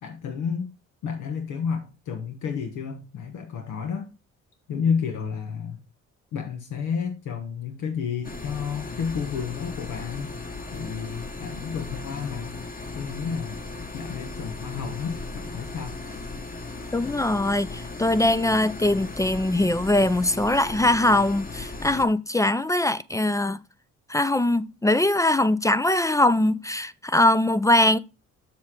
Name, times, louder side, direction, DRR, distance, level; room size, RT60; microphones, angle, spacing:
voice 1, 0.0-0.7 1.0-4.1 4.7-5.8 6.3-10.4 10.7-12.6 12.9-13.6 13.9-16.0, left 6 dB, 85° left, 1.2 m, -31 dB
sound 1, 8.2-22.1, left 3 dB, 30° left, 1.3 m, -37 dB
voice 2, 16.9-23.6 24.1-28.0, left 1 dB, 10° left, 0.4 m, -22 dB
7.3 x 6.4 x 3.7 m
cardioid pair, 90°, 30 cm